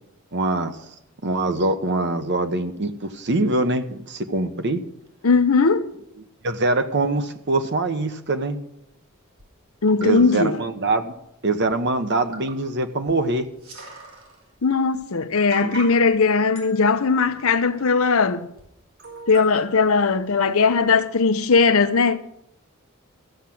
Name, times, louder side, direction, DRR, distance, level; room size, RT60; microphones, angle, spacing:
voice 1, 0.3-0.8 1.2-4.8 6.4-8.6 10.0-11.1 11.4-13.5 15.6-15.7, right 2 dB, 55° right, 1.1 m, -23 dB
voice 2, 5.2-5.9 9.8-10.7 14.6-18.5 19.3-22.2, left 4 dB, 75° left, 0.8 m, -19 dB
sound 1, 9.4-9.5 9.9-10.2 11.3-11.4 11.7-11.8 12.2-12.7 13.1-13.2 13.4-14.5 15.0-15.1 15.5-16.1 16.6-18.1 18.6-18.7 19.0-20.4 20.9-21.0, right 2 dB, 75° right, 4.7 m, -40 dB
14.0 x 7.2 x 7.7 m
head